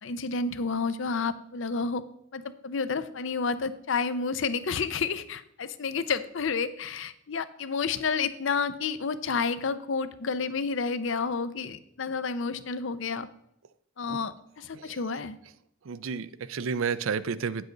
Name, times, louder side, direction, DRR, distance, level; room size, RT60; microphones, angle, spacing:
voice 1, 0.0-2.0 2.3-13.3 14.0-15.4, left 5 dB, 65° left, 13 dB, 0.6 m, -30 dB
voice 2, 15.8-17.7, right 6 dB, 75° right, 16 dB, 0.5 m, -31 dB
9.3 x 7.7 x 3.9 m, 0.73 s
head